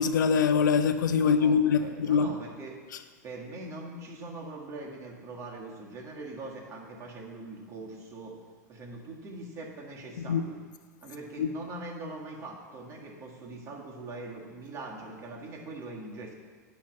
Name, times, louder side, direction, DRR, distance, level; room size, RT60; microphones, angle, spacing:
voice 1, 0.0-2.3 10.2-10.4 11.4-11.5, left 6 dB, 85° left, 0.5 m, -24 dB
voice 2, 1.2-2.8 3.2-8.4 8.7-10.6 11.0-16.3, right 2 dB, 30° right, 1.7 m, -42 dB
9.7 x 3.2 x 6.3 m
hypercardioid pair, 110°, 10 cm